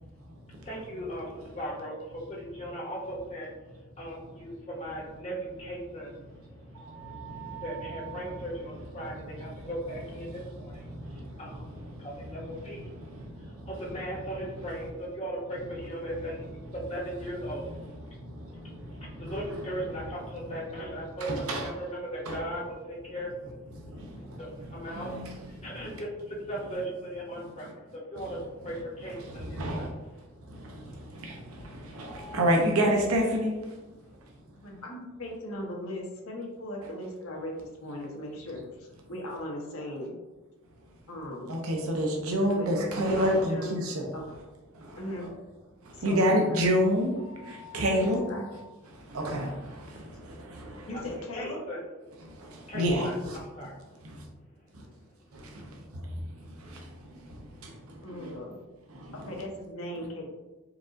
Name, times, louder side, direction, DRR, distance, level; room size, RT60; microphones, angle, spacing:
voice 1, 0.6-3.5 4.0-7.1 7.4-11.7 12.0-12.9 13.4-17.7 18.5-23.6 23.9-25.1 25.5-30.2 30.6-30.8 31.1-32.4 51.3-51.8 52.7-53.7, right 1 dB, 30° left, -4 dB, 1.2 m, -38 dB
voice 2, 6.7-7.6 8.2-8.3 10.9-11.4 11.9-12.1 13.0-13.7 18.2-19.3 21.3-21.7 22.3-22.4 23.9-24.4 24.9-25.3 25.6-25.7 29.3-29.9 30.5-33.5 41.5-44.1 44.7-45.3 45.8-48.2 49.1-50.9 52.4-53.4 54.7-54.8 55.3-55.7 56.6-58.4 58.9-59.1, equal, 85° right, 1 dB, 0.7 m, -30 dB
voice 3, 34.6-40.1 41.1-41.5 42.5-42.7 43.2-43.7 44.1-44.2 45.0-45.3 45.9-46.6 47.4-47.5 47.9-48.4 50.9-51.6 58.0-58.6 59.1-60.2, left 1 dB, 85° left, -1 dB, 1.1 m, -38 dB
4.6 x 2.5 x 3.7 m, 1.1 s
head